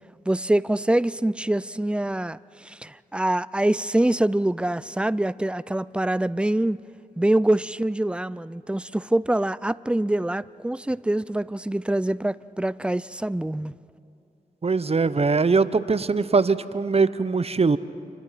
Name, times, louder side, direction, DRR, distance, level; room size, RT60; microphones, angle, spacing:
voice 1, 0.3-6.8 7.2-13.7, right 1 dB, 5° right, 0.5 m, -25 dB
voice 2, 14.6-17.8, right 4 dB, 45° right, 0.8 m, -21 dB
28.5 x 25.5 x 5.8 m
cardioid pair, 55°, 15 cm